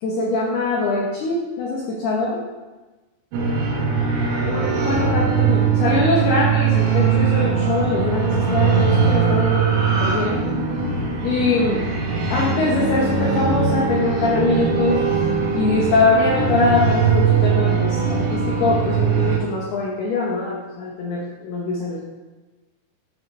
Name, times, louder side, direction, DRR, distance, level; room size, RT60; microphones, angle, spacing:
voice 1, 0.0-2.4 4.4-9.6 10.0-10.4 11.2-11.8 12.3-15.0 15.5-22.1, left 3 dB, 80° left, -4 dB, 2.3 m, -22 dB
sound 1, 3.3-19.4, right 5 dB, 70° right, 3.1 m, -20 dB
9.7 x 5.9 x 3.2 m, 1.2 s
omnidirectional pair, 5.8 m